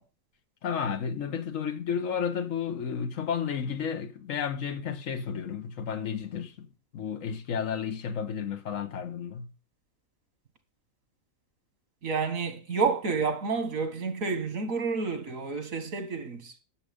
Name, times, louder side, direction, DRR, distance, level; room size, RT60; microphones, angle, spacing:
voice 1, 0.6-9.5, left 7 dB, 70° left, 1.5 m, -32 dB
voice 2, 12.0-16.6, right 4 dB, 90° right, 2.0 m, -30 dB
11.5 x 6.9 x 5.2 m
omnidirectional pair, 1.4 m